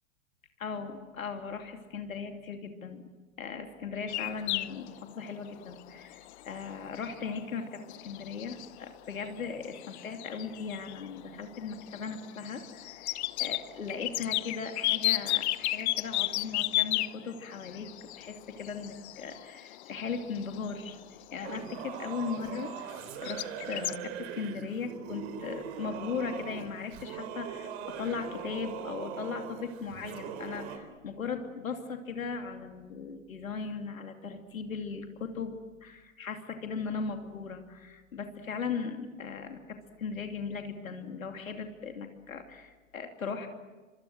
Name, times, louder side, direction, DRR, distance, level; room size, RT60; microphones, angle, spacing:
voice 1, 0.6-3.0 3.4-17.9 18.2-21.0 21.3-22.9 23.2-43.5, left 5 dB, 85° left, 5 dB, 2.9 m, -38 dB
sound 1, 4.1-23.0 23.2-24.0, left 16 dB, 55° left, 0.8 m, -34 dB
Singing / Musical instrument, 21.4-30.8, right 8 dB, 50° right, 3.7 m, -41 dB
25.0 x 24.5 x 7.8 m, 1.3 s
hypercardioid pair, 120°, 40 cm